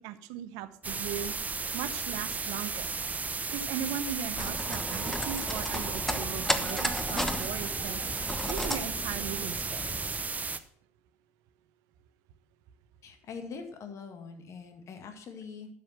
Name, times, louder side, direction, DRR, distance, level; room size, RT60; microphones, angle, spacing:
voice 1, 0.0-1.3 1.7-2.9 3.5-8.0 8.5-9.9, right 10 dB, 65° right, 12 dB, 0.9 m, -38 dB
sound 1, 0.8-10.6, right 4 dB, 20° right, 0.8 m, -34 dB
sound 2, 4.4-10.2, left 1 dB, 5° left, 1.2 m, -34 dB
voice 2, 13.0-15.7, left 5 dB, 45° left, 6 dB, 2.0 m, -43 dB
12.0 x 6.8 x 6.0 m, 0.65 s
figure-of-eight pair, 60°, 7 cm